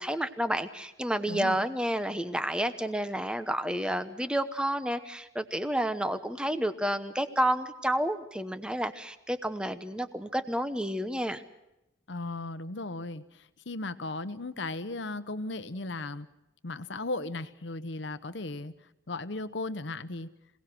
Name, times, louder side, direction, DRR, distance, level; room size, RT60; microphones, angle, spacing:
voice 1, 0.0-11.4, right 1 dB, 5° right, 10 dB, 0.9 m, -30 dB
voice 2, 1.3-1.6 12.1-16.3 16.6-18.7 19.1-20.3, left 2 dB, 70° left, 12 dB, 1.0 m, -36 dB
26.5 x 18.0 x 6.1 m, 0.91 s
head